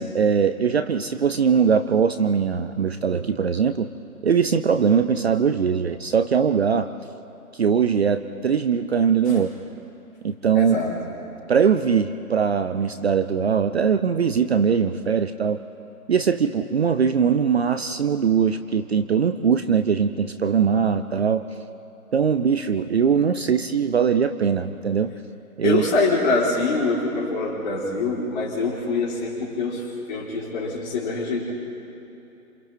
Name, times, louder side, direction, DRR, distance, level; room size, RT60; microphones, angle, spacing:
voice 1, 0.0-3.9 4.2-6.9 7.5-9.5 10.2-10.8 11.5-15.6 16.1-21.4 22.1-25.1 25.6-25.8, right 6 dB, 45° right, 10 dB, 0.7 m, -21 dB
voice 2, 10.5-11.0 25.6-31.5, left 3 dB, 30° left, -5 dB, 5.1 m, -24 dB
27.5 x 27.5 x 4.6 m, 2.9 s
figure-of-eight pair, 150°, 45 cm